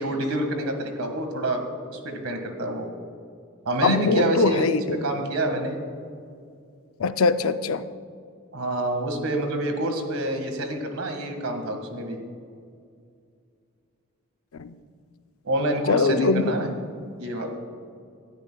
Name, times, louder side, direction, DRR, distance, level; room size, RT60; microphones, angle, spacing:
voice 1, 0.0-1.6 1.9-2.9 3.7-5.8 8.5-12.2 15.4-16.7 17.2-17.5, right 1 dB, 80° right, 4 dB, 1.8 m, -27 dB
voice 2, 3.8-5.0 7.0-7.8 14.6-14.7 15.9-16.4, left 4 dB, 70° left, 11 dB, 0.5 m, -22 dB
19.5 x 13.0 x 2.3 m, 2.3 s
head